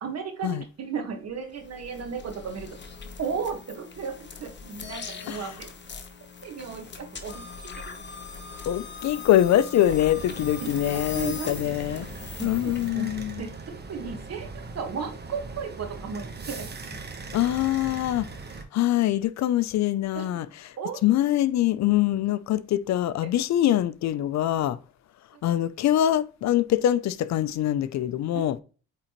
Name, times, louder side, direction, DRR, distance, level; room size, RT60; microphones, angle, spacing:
voice 1, 0.0-2.8 3.2-5.7 6.4-7.3 7.8-7.9 10.6-11.5 11.8-12.1 12.4-13.1 13.4-13.5 13.9-14.5 14.8-16.7 20.1-20.4 20.8-21.0 25.3-25.4 28.3-28.5, right 6 dB, 55° right, 1.6 m, -35 dB
sound 1, 1.3-12.9, left 5 dB, 35° left, 1.1 m, -41 dB
voice 2, 8.7-12.1 12.4-13.4 17.3-18.3 18.7-20.8 21.0-24.8 25.4-28.6, left 12 dB, 65° left, 0.5 m, -24 dB
sound 2, 10.1-18.6, right 3 dB, 35° right, 1.2 m, -40 dB
8.5 x 3.8 x 3.0 m
cardioid pair, 90°, 30 cm